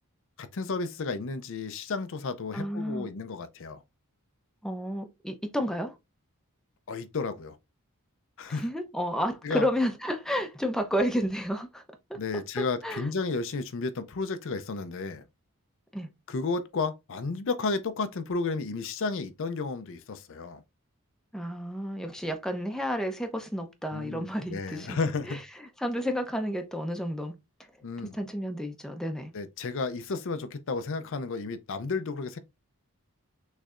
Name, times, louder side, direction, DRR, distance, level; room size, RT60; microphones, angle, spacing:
voice 1, 0.4-3.8 6.9-7.6 8.4-8.6 9.4-9.7 12.1-15.2 16.3-20.6 23.9-25.5 27.8-28.1 29.3-32.4, left 4 dB, 60° left, 0.5 m, -32 dB
voice 2, 2.5-3.1 4.6-6.0 8.5-11.8 12.1-12.2 12.6-13.1 15.9-16.1 21.3-25.0 25.2-25.4 25.8-27.3 28.1-29.3, equal, 5° left, 0.6 m, -31 dB
6.3 x 3.2 x 2.4 m
head